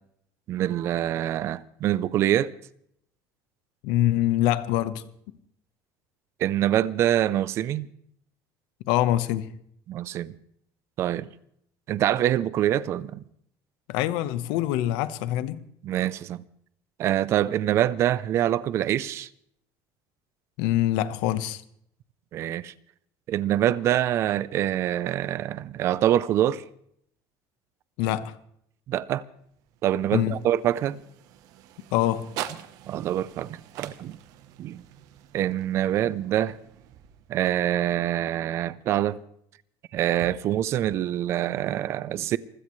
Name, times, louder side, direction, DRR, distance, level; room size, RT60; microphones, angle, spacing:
voice 1, 0.5-2.5 6.4-7.9 9.9-10.3 11.0-11.3 11.9-13.2 15.8-16.4 17.0-19.3 22.3-22.7 23.3-26.6 28.9-29.2 29.8-31.0 32.9-34.2 34.6-34.8 35.3-36.6 37.3-39.2 39.9-42.4, right 12 dB, 40° right, 0.6 m, -25 dB
voice 2, 3.8-5.0 8.9-9.5 13.9-15.6 20.6-21.6 28.0-28.3 30.1-30.4 31.9-32.3, left 13 dB, 75° left, 1.1 m, -24 dB
sound 1, 29.3-37.6, right 12 dB, 55° right, 1.0 m, -44 dB
26.0 x 16.0 x 3.2 m
cardioid pair, 175°, 7 cm